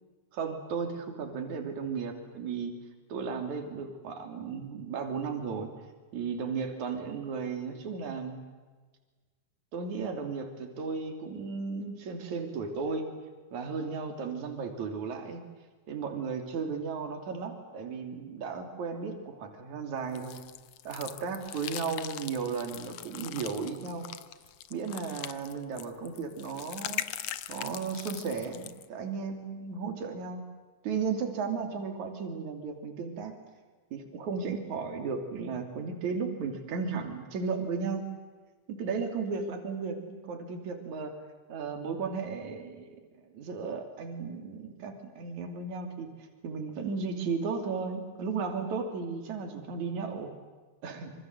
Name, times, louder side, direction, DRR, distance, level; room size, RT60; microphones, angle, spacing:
voice 1, 0.3-2.7 3.1-5.7 6.1-8.5 9.7-13.1 13.5-15.4 15.9-20.4 20.8-24.1 24.7-27.1 27.5-30.4 30.8-33.4 33.9-38.1 38.7-41.1 41.5-43.0 43.3-50.3 50.8-51.1, right 5 dB, 60° right, 5 dB, 4.3 m, -35 dB
sound 1, 20.2-28.9, left 12 dB, 65° left, 1.7 m, -41 dB
26.5 x 26.0 x 7.9 m, 1.4 s
omnidirectional pair, 3.8 m